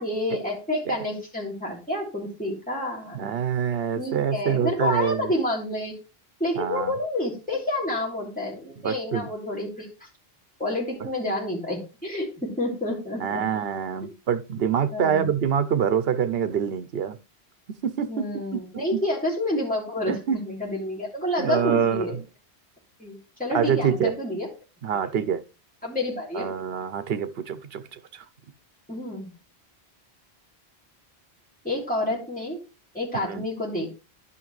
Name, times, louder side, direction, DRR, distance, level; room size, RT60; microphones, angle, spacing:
voice 1, 0.0-3.4 4.0-5.9 6.4-10.1 10.6-13.4 14.9-15.2 18.1-22.2 23.0-24.5 25.1-25.3 25.8-26.5 28.9-29.3 31.6-32.6 32.9-33.9, left 1 dB, 10° left, 3.3 m, -29 dB
voice 2, 3.1-5.3 6.6-7.0 8.8-9.4 13.2-17.2 17.8-18.2 18.5-18.6 18.9-19.0 20.1-20.4 21.4-22.2 23.5-24.1 24.8-25.4 26.3-28.2 33.1-33.5, right 8 dB, 70° right, 0.9 m, -26 dB
11.0 x 5.9 x 3.1 m
omnidirectional pair, 1.1 m